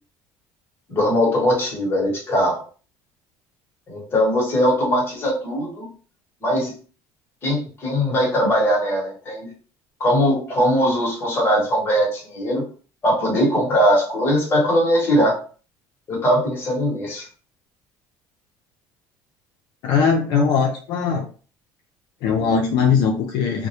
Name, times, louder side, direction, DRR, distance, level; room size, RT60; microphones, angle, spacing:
voice 1, 0.9-2.6 3.9-5.9 6.4-6.7 7.4-9.5 10.0-12.6 13.0-15.4 16.1-17.3, equal, 30° left, -3 dB, 1.0 m, -20 dB
voice 2, 19.8-21.2 22.2-23.7, left 6 dB, 65° left, 1 dB, 0.4 m, -20 dB
2.2 x 2.0 x 2.8 m, 0.39 s
cardioid pair, 145°, 8 cm